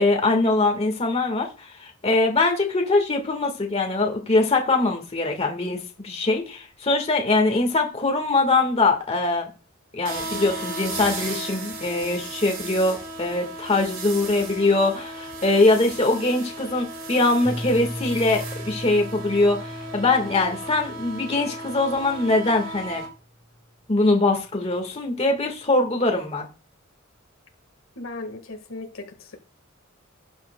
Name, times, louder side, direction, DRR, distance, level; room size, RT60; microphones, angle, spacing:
voice 1, 0.0-9.5 9.9-23.0 23.9-26.5, left 2 dB, 30° left, 1.5 m, -22 dB
sound 1, 10.0-23.1, right 2 dB, 65° right, 2.3 m, -35 dB
voice 2, 10.2-10.5 27.9-29.4, left 2 dB, 85° left, 1.6 m, -37 dB
Piano, 17.4-23.1, equal, 5° left, 1.0 m, -38 dB
12.5 x 8.6 x 2.2 m
head